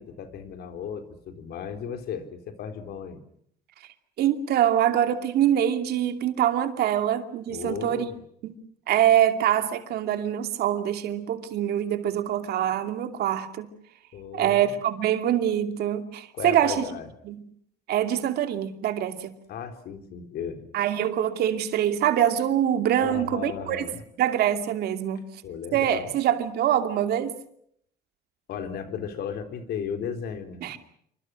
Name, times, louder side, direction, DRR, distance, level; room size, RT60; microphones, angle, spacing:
voice 1, 0.0-3.2 7.5-8.2 14.1-14.8 16.3-17.1 19.5-20.7 23.0-24.0 25.4-26.1 28.5-30.8, left 7 dB, 70° left, 3.8 m, -35 dB
voice 2, 4.2-8.1 8.4-8.6 8.9-13.7 14.3-16.9 17.2-17.4 17.9-19.3 20.7-23.8 24.2-25.2 25.7-27.3 30.6-30.8, right 10 dB, 70° right, 2.7 m, -24 dB
27.5 x 25.5 x 6.3 m
cardioid pair, 110°, 17 cm